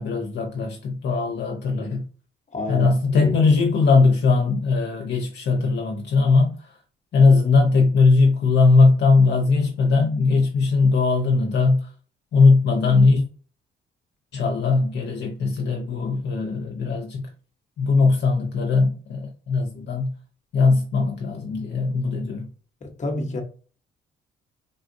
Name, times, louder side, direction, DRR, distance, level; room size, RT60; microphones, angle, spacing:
voice 1, 0.0-2.0 2.7-6.7 7.1-11.9 12.3-13.2 14.3-17.3 17.8-20.1 20.5-22.5, left 4 dB, 60° left, 0.8 m, -19 dB
voice 2, 2.5-2.9 3.2-3.3 22.8-23.4, left 1 dB, 35° left, 1.0 m, -29 dB
3.5 x 2.4 x 2.6 m
cardioid pair, 90°, 20 cm